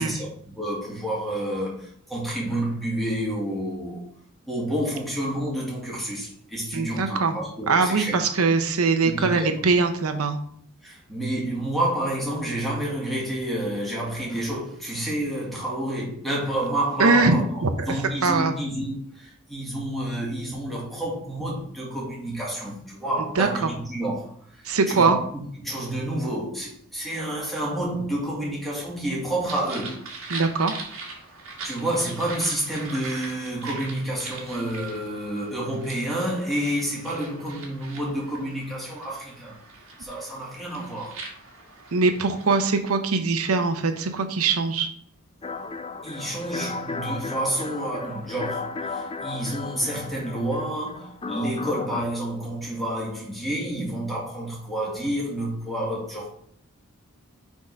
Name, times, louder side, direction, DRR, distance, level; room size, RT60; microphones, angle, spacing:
voice 1, 0.0-4.0 4.5-8.2 9.0-9.5 10.8-30.1 31.6-39.6 40.0-41.2 46.0-56.3, right 1 dB, ahead, 2.0 m, -29 dB
voice 2, 6.7-7.4 7.7-10.4 17.0-17.3 17.6-17.9 18.2-18.5 23.4-23.7 24.6-25.2 30.3-30.7 41.9-44.9, right 4 dB, 85° right, 0.8 m, -22 dB
sound 1, 29.5-42.7, right 3 dB, 65° right, 1.9 m, -41 dB
sound 2, 45.4-52.0, left 4 dB, 25° left, 0.4 m, -34 dB
6.3 x 3.7 x 5.3 m
head